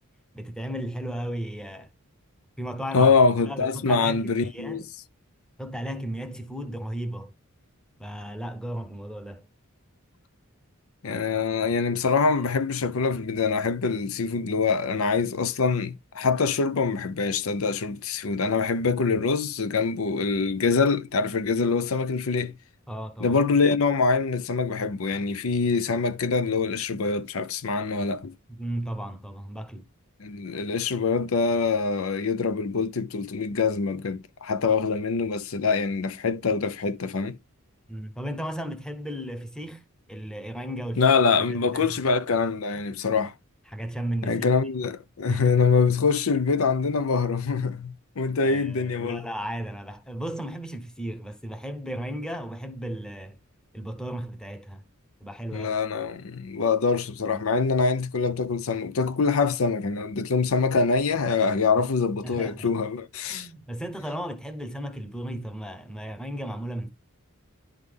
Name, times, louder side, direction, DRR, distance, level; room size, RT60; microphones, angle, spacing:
voice 1, 0.3-1.9 2.6-3.1 3.5-4.9 5.6-7.3 8.0-9.5 22.9-23.4 28.5-29.9 37.9-39.8 40.1-41.1 41.5-42.0 42.7-42.8 43.7-44.5 45.3-45.5 48.4-53.4 53.7-54.8 55.2-55.7 62.2-62.7 63.2-66.9, right 1 dB, 5° left, 0.9 m, -35 dB
voice 2, 2.9-4.9 11.0-22.5 23.2-28.3 30.2-37.4 41.0-43.3 44.2-49.2 55.5-63.5, left 4 dB, 70° left, 0.6 m, -24 dB
11.0 x 3.7 x 3.4 m
head